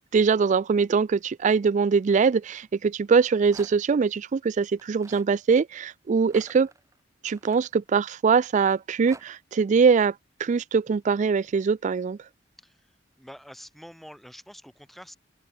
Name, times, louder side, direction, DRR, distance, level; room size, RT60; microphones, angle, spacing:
voice 1, 0.1-6.7 7.2-10.1 10.4-12.2, right 5 dB, 40° right, 0.3 m, -22 dB
Rattle, 3.1-4.0 4.7-5.3 6.2-8.2 8.7-9.2, right 2 dB, 15° right, 2.5 m, -50 dB
voice 2, 12.6-12.9 13.2-15.2, equal, ahead, 3.2 m, -46 dB
open air
head